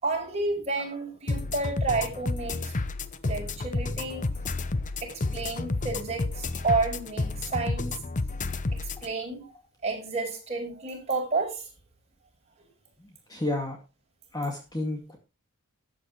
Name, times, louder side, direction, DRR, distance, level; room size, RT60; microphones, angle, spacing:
voice 1, 0.0-2.7 3.2-4.3 5.0-7.9 8.7-9.5 9.8-11.7, right 3 dB, 30° right, 5.6 m, -30 dB
sound 1, 1.3-9.1, left 3 dB, 35° left, 0.8 m, -31 dB
voice 2, 13.0-13.8 14.3-15.2, left 2 dB, 20° left, 2.1 m, -31 dB
14.0 x 8.7 x 3.1 m
head